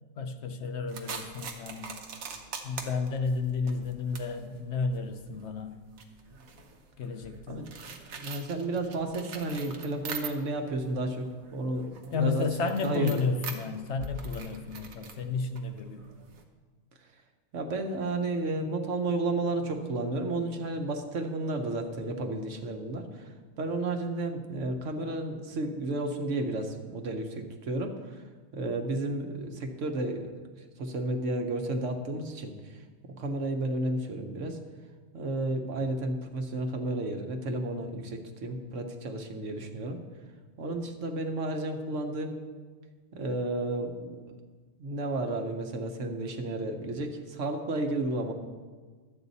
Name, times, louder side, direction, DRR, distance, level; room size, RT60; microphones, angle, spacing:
voice 1, 0.2-2.0 2.6-5.8 7.0-7.7 12.1-16.1, left 4 dB, 65° left, 7 dB, 0.9 m, -32 dB
sound 1, 0.9-10.7 11.0-16.4, right 4 dB, 90° right, 1.4 m, -43 dB
voice 2, 8.2-12.4 12.8-13.2 17.5-28.2 28.5-30.3 30.8-34.6 35.1-40.0 40.6-42.4 43.1-44.4 44.8-48.3, right 2 dB, 65° right, 4 dB, 1.2 m, -32 dB
12.0 x 8.1 x 4.1 m, 1.4 s
omnidirectional pair, 1.4 m